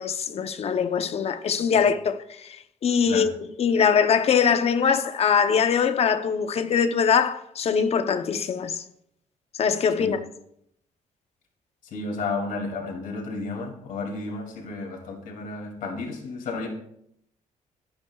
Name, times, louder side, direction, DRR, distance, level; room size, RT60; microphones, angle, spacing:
voice 1, 0.0-8.8 9.6-10.2, left 6 dB, 50° left, 0.8 m, -22 dB
voice 2, 11.9-16.7, left 3 dB, 80° left, 2.6 m, -32 dB
22.0 x 8.7 x 2.4 m
cardioid pair, 150°, 14 cm